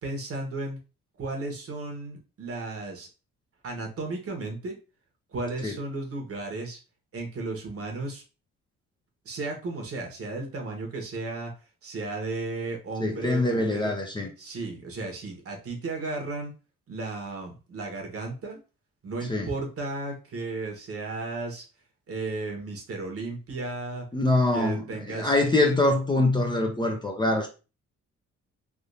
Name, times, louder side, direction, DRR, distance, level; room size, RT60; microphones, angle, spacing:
voice 1, 0.0-0.8 1.2-3.1 3.6-4.8 5.3-6.8 7.1-8.2 9.2-11.5 11.8-13.9 14.4-16.5 16.9-18.6 19.0-21.6 22.1-24.1 24.5-25.3, right 3 dB, 50° right, 1.3 m, -34 dB
voice 2, 13.0-14.3 19.3-19.5 24.1-27.5, left 2 dB, 15° left, 0.7 m, -24 dB
3.5 x 2.6 x 2.7 m
cardioid pair, 90°, 30 cm